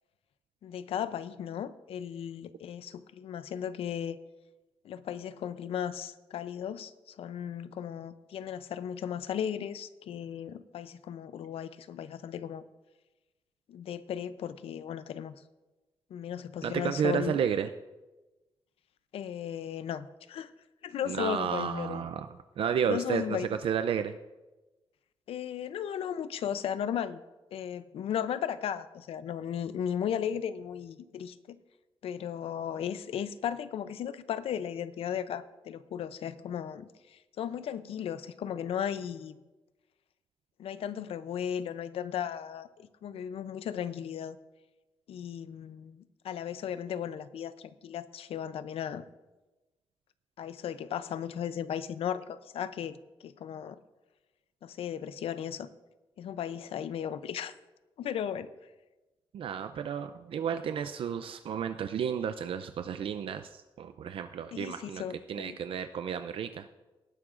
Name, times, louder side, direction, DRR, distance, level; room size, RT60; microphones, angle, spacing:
voice 1, 0.6-4.2 4.8-12.6 13.7-15.3 16.1-17.4 19.1-20.5 20.8-22.0 22.8-23.5 25.3-27.2 27.5-31.6 32.0-39.4 40.6-44.4 45.1-49.0 50.4-53.0 53.2-53.8 54.6-55.7 56.2-57.5 58.0-58.5 64.5-65.6, left 9 dB, 90° left, 14 dB, 0.6 m, -36 dB
voice 2, 16.6-17.7 21.1-22.3 22.6-24.2 59.3-65.0 65.3-66.7, right 8 dB, 70° right, 9 dB, 0.5 m, -32 dB
18.5 x 11.0 x 2.5 m, 1.1 s
cardioid pair, 120°, 10 cm